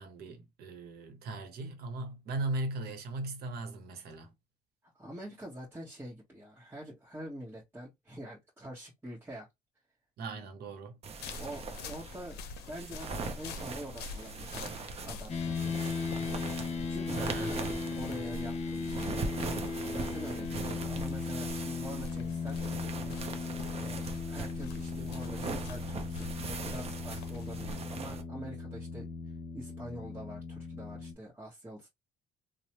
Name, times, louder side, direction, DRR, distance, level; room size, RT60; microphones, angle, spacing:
voice 1, 0.0-4.3 10.2-11.0 17.2-17.7, right 2 dB, 65° right, 0.9 m, -38 dB
voice 2, 4.9-9.5 11.3-12.4 12.7-14.8 15.0-16.2 16.9-19.3 19.9-22.6 23.8-29.1 29.5-31.9, equal, 15° right, 1.1 m, -45 dB
sound 1, 11.0-28.2, right 4 dB, 35° right, 0.6 m, -41 dB
sound 2, 11.2-27.7, left 3 dB, 75° left, 0.6 m, -46 dB
sound 3, 15.3-31.1, left 4 dB, 40° left, 0.8 m, -37 dB
3.1 x 2.0 x 2.9 m
cardioid pair, 110°, 17 cm